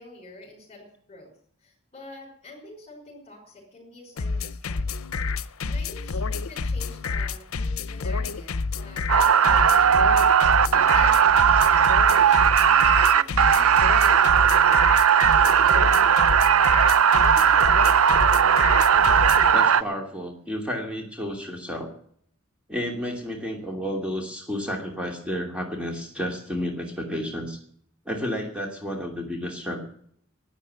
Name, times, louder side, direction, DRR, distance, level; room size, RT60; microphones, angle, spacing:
voice 1, 0.0-1.3 1.6-4.9 5.6-11.4 12.2-14.5, left 2 dB, 30° left, -3 dB, 5.7 m, -47 dB
sound 1, 4.2-19.5, left 4 dB, 90° left, 0.7 m, -29 dB
sound 2, 9.1-19.8, right 8 dB, 85° right, 0.6 m, -18 dB
voice 2, 19.5-21.9 22.7-27.6 28.1-29.8, equal, 5° right, 2 dB, 2.7 m, -31 dB
12.5 x 10.0 x 9.4 m, 0.63 s
head